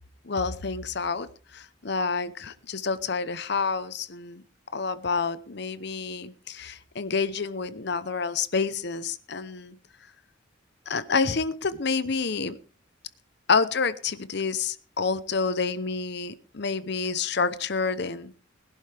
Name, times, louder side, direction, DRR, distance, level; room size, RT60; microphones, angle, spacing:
voice 1, 0.2-1.3 1.5-4.4 4.7-9.8 10.9-12.6 13.5-18.4, left 4 dB, 55° left, 14 dB, 0.8 m, -28 dB
21.0 x 11.0 x 3.4 m, 0.40 s
head